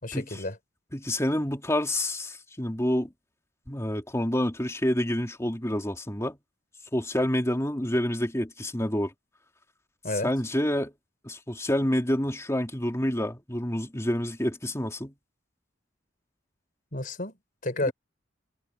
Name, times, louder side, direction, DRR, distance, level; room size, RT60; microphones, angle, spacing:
voice 1, 0.0-0.6 10.0-10.3 16.9-17.4 17.6-17.9, left 2 dB, 45° left, 5.3 m, -30 dB
voice 2, 0.9-3.1 3.7-6.4 6.9-9.1 10.2-10.9 11.2-15.1 17.8-17.9, left 1 dB, 15° left, 2.9 m, -28 dB
head